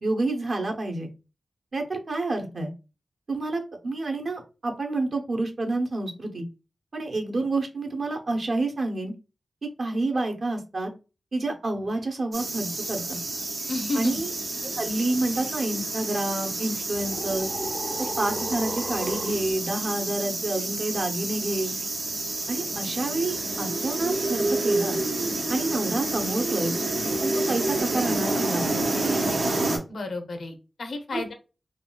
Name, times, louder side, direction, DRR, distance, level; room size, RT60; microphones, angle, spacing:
voice 1, 0.0-1.1 1.7-2.7 3.3-6.4 6.9-9.1 9.8-10.9 11.3-13.2 13.9-14.3 14.7-17.5 18.2-21.7 22.5-25.0 25.5-26.7 27.2-28.8 31.1-31.2, right 2 dB, 60° right, 3 dB, 0.7 m, -28 dB
sound 1, 12.3-29.8, right 2 dB, 85° right, 0.9 m, -29 dB
voice 2, 13.7-14.2 29.9-31.3, left 2 dB, 80° left, 5 dB, 0.6 m, -31 dB
sound 2, 16.9-19.5, right 1 dB, 20° right, 0.4 m, -35 dB
3.5 x 2.3 x 2.2 m, 0.31 s
wide cardioid pair, 95°, 0 cm